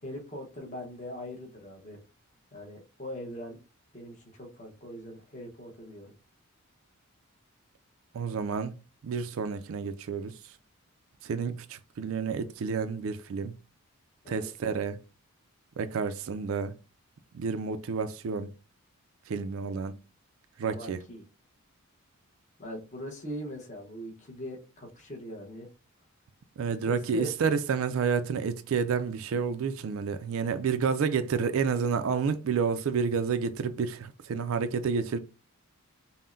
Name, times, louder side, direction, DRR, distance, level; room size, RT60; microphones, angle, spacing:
voice 1, 0.0-2.0 2.5-3.6 3.9-6.1 14.2-14.5 20.6-21.2 22.6-25.7 26.8-27.3, equal, 35° left, 0.9 m, -41 dB
voice 2, 8.1-8.8 9.0-10.5 11.2-13.5 14.3-15.0 15.8-16.7 17.3-18.5 19.3-20.0 20.6-21.0 26.6-35.2, right 6 dB, 60° right, 0.3 m, -30 dB
5.4 x 2.1 x 2.5 m
head